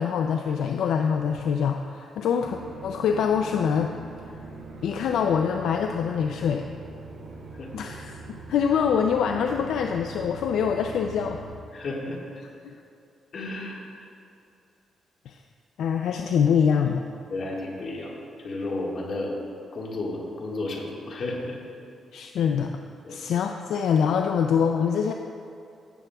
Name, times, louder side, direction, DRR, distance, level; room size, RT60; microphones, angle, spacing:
voice 1, 0.0-3.9 4.3-4.4 4.8-6.7 7.7-11.4 12.6-12.8 15.3-15.4 15.8-17.1 22.1-22.7 23.1-25.1, left 7 dB, 85° left, 4 dB, 0.3 m, -24 dB
sound 1, 2.4-11.6, right 2 dB, 75° right, 1.6 m, -42 dB
voice 2, 11.7-12.4 13.3-14.0 17.3-18.1 18.4-19.3 19.7-21.6 23.0-23.2, left 2 dB, 55° left, -2 dB, 1.6 m, -32 dB
15.0 x 7.2 x 2.3 m, 2.6 s
cardioid pair, 95°, 0 cm